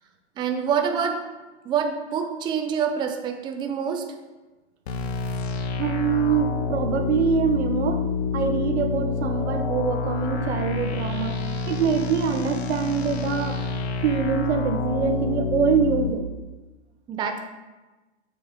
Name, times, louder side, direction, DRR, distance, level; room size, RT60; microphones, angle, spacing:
voice 1, 0.4-1.2 1.6-4.0 17.1-17.4, right 7 dB, 15° right, 4 dB, 0.5 m, -26 dB
sound 1, 4.9-16.1, left 4 dB, 65° left, 1.2 m, -28 dB
voice 2, 5.8-8.1 8.3-11.4 11.7-13.6 14.0-16.2, right 6 dB, 70° right, 6 dB, 1.0 m, -24 dB
7.3 x 6.2 x 3.6 m, 1.2 s
hypercardioid pair, 120°, 35 cm